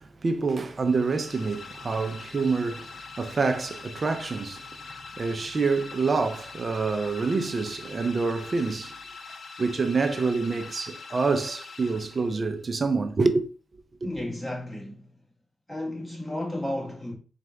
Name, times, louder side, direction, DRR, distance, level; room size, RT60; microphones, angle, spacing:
voice 1, 0.0-4.7 5.2-9.0 9.6-13.5 14.0-14.1, right 4 dB, 45° right, 0.5 m, -27 dB
sound 1, 0.8-12.6, left 4 dB, 55° left, 0.6 m, -43 dB
voice 2, 14.0-15.1 15.7-17.1, left 1 dB, 10° left, 1.7 m, -33 dB
4.3 x 2.5 x 3.4 m
cardioid pair, 70°, 0 cm